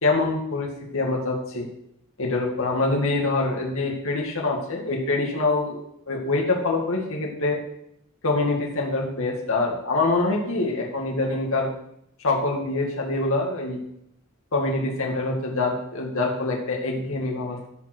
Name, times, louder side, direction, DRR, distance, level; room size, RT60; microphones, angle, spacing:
voice 1, 0.0-1.7 2.2-5.8 6.1-7.6 8.2-11.7 12.2-13.8 14.5-17.7, left 2 dB, 65° left, 0 dB, 2.3 m, -25 dB
14.5 x 5.3 x 6.2 m, 0.75 s
head